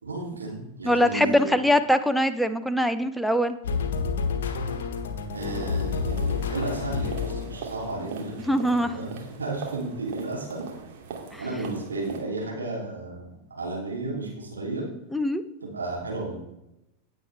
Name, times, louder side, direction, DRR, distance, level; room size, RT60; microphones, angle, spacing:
voice 1, 0.0-1.5 5.3-10.6 11.4-14.9 15.6-16.4, right 2 dB, 75° right, -3 dB, 2.9 m, -33 dB
voice 2, 0.8-3.5 8.5-9.0 11.3-11.4 15.1-15.4, equal, ahead, 10 dB, 0.7 m, -22 dB
sound 1, 3.6-7.8, left 5 dB, 60° left, 1.4 m, -29 dB
sound 2, 5.3-12.2, right 5 dB, 50° right, 2.6 m, -40 dB
15.5 x 8.0 x 3.4 m, 0.90 s
figure-of-eight pair, 90°, 0 cm